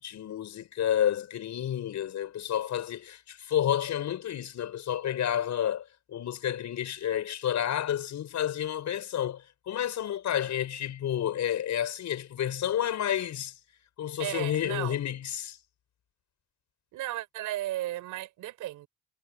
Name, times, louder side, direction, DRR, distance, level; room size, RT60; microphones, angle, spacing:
voice 1, 0.0-13.6 14.0-15.6, left 10 dB, 70° left, 5.1 m, -30 dB
voice 2, 14.2-15.0 16.9-18.9, right 14 dB, 90° right, 5.1 m, -35 dB
cardioid pair, 90°, 30 cm